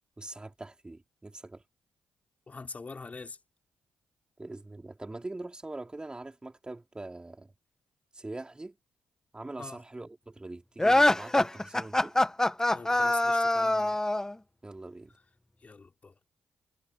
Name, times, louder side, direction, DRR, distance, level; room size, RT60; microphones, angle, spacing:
voice 1, 0.2-1.6 4.4-7.5 8.1-8.8 9.3-12.2 14.6-15.1, right 2 dB, 20° right, 4.6 m, -43 dB
voice 2, 2.5-3.4 9.6-9.8 12.7-14.0 15.6-16.1, left 4 dB, 40° left, 5.6 m, -43 dB
sound 1, 10.8-14.3, left 1 dB, 15° left, 1.6 m, -24 dB
supercardioid pair, 50°, 4 cm